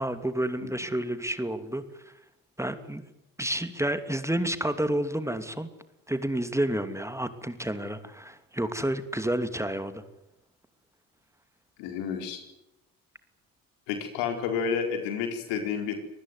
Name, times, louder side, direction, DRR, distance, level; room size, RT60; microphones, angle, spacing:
voice 1, 0.0-2.1 2.6-3.0 3.4-5.7 6.1-10.0, right 1 dB, 5° right, 10 dB, 2.8 m, -30 dB
voice 2, 11.8-12.4 13.9-16.0, left 6 dB, 70° left, 6 dB, 4.6 m, -30 dB
25.0 x 19.5 x 9.6 m, 0.84 s
hypercardioid pair, 50°, 41 cm